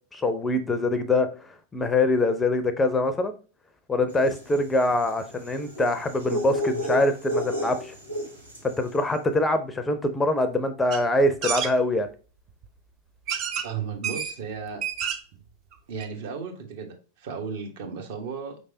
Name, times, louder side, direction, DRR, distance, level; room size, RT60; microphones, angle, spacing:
voice 1, 0.1-3.3 3.9-7.9 8.6-12.1, left 2 dB, 15° left, 0.5 m, -24 dB
sound 1, 4.2-8.8, equal, 90° right, 1.1 m, -32 dB
sound 2, 10.9-11.0 11.4-11.7 12.6-12.7 13.3-13.7 14.0-14.3 14.7-15.3 15.7-15.8 16.0-16.1, right 8 dB, 40° right, 0.6 m, -29 dB
voice 2, 13.6-14.8 15.9-18.6, right 6 dB, 55° right, 1.0 m, -34 dB
5.2 x 3.3 x 2.6 m
figure-of-eight pair, 90°, 0 cm